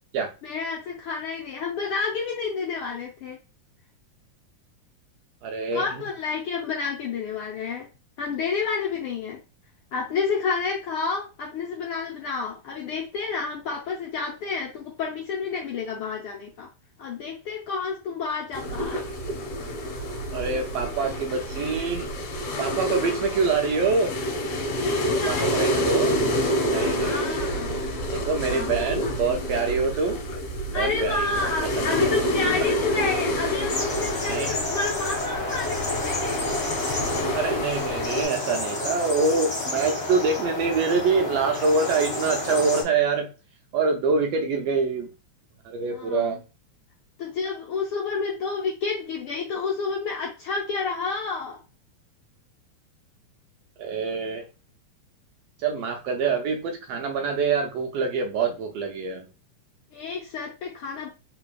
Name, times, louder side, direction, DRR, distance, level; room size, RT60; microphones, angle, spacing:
voice 1, 0.4-3.4 5.7-7.9 8.2-9.4 9.9-16.7 17.0-19.0 24.8-25.5 26.7-27.9 28.5-29.5 30.7-36.6 45.9-46.4 47.2-51.6 59.9-61.1, left 5 dB, 80° left, -1 dB, 1.2 m, -30 dB
voice 2, 5.4-5.8 20.3-24.1 25.3-26.2 26.7-27.5 28.1-30.2 30.7-31.5 31.8-31.9 32.6-32.8 34.3-34.6 37.3-43.3 43.7-45.1 45.6-46.4 53.8-54.5 55.6-59.3, right 4 dB, 85° right, 4 dB, 1.4 m, -25 dB
sound 1, 18.5-38.2, equal, 65° left, 2.3 m, -28 dB
sound 2, 33.7-42.8, left 2 dB, 30° left, 1.3 m, -30 dB
4.1 x 3.9 x 2.3 m, 0.31 s
omnidirectional pair, 3.4 m